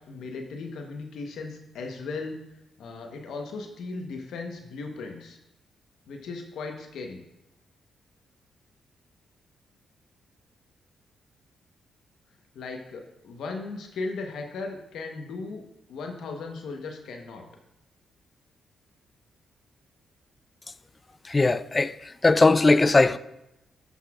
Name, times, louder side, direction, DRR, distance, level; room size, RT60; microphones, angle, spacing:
voice 1, 0.1-2.4 2.8-5.4 6.1-7.2 12.5-15.6 15.9-17.5, left 3 dB, 80° left, 1.1 m, -37 dB
voice 2, 21.3-23.2, left 3 dB, 30° left, 0.4 m, -20 dB
15.0 x 5.5 x 2.4 m
supercardioid pair, 60°, 0 cm